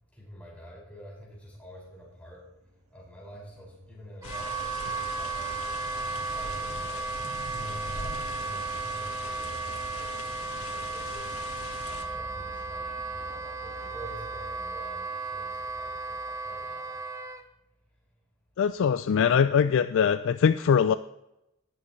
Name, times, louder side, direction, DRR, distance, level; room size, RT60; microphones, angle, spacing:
voice 1, 0.1-2.5 2.9-7.2 7.5-17.1 18.0-18.1, equal, 5° left, -5 dB, 5.6 m, -47 dB
sound 1, 1.4-17.1, right 1 dB, 75° right, 1.8 m, -51 dB
sound 2, 4.2-12.0, left 3 dB, 85° left, 1.7 m, -41 dB
Wind instrument woodwind instrument, 4.2-17.4, right 4 dB, 15° right, 0.9 m, -35 dB
voice 2, 18.6-20.9, left 7 dB, 65° left, 13 dB, 0.4 m, -22 dB
20.0 x 8.5 x 3.2 m, 0.87 s
head